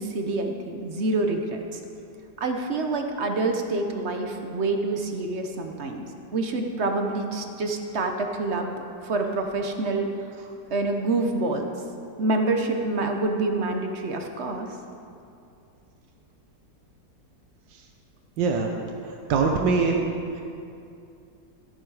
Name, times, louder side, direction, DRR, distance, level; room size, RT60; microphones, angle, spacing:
voice 1, 0.0-1.6 2.4-6.0 6.3-8.7 9.0-10.1 10.7-11.7 12.2-14.7, right 2 dB, 50° right, 4 dB, 0.9 m, -27 dB
voice 2, 18.4-18.7 19.3-20.1, right 4 dB, 90° right, 2 dB, 1.5 m, -22 dB
14.0 x 8.6 x 4.8 m, 2.6 s
omnidirectional pair, 1.9 m